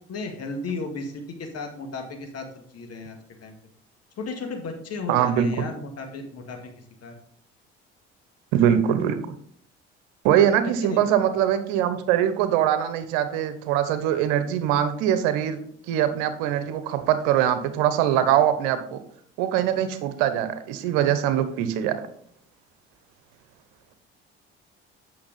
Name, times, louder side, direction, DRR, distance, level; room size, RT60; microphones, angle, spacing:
voice 1, 0.1-3.5 4.2-6.6 7.0-7.1 10.6-11.0, left 3 dB, 50° left, 4 dB, 2.0 m, -34 dB
voice 2, 5.1-5.6 8.5-9.2 10.2-15.6 15.9-19.0 19.4-22.0, right 10 dB, 75° right, 11 dB, 1.0 m, -22 dB
8.7 x 6.2 x 4.0 m, 0.62 s
hypercardioid pair, 60°, 31 cm